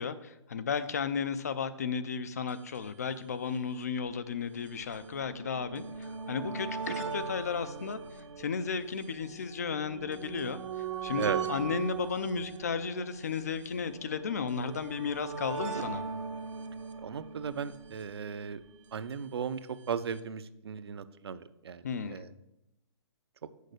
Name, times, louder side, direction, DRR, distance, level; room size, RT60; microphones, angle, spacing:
voice 1, 0.0-8.0 8.4-16.0 21.8-22.3, left 6 dB, 35° left, 14 dB, 0.4 m, -34 dB
sound 1, 2.5-2.6 2.8-2.9 3.7-19.0 19.9-20.0 20.2-20.3, right 6 dB, 75° right, 1.0 m, -40 dB
voice 2, 17.0-18.6 18.9-19.6 19.9-21.8 22.1-22.3, right 7 dB, 55° right, 14 dB, 0.5 m, -36 dB
6.5 x 5.3 x 6.5 m, 0.87 s
hypercardioid pair, 175°, 16 cm